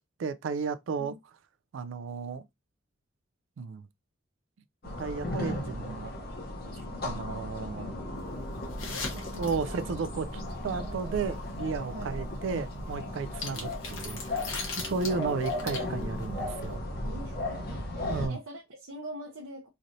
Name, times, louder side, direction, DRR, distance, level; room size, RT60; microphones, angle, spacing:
voice 1, 0.2-1.1 1.7-2.4 3.6-3.8 4.8-6.1 7.0-7.9 9.4-14.4 14.8-16.8 18.1-18.4, right 5 dB, 65° right, 0.3 m, -33 dB
sound 1, 4.8-18.3, left 1 dB, 50° left, 0.8 m, -36 dB
sound 2, 8.6-10.1 13.2-16.2 16.6-16.7, left 4 dB, 75° left, 1.0 m, -38 dB
voice 2, 9.0-9.9 11.9-12.2 15.1-15.4 17.0-19.7, right 1 dB, 90° right, 0.7 m, -44 dB
3.1 x 2.6 x 2.6 m
head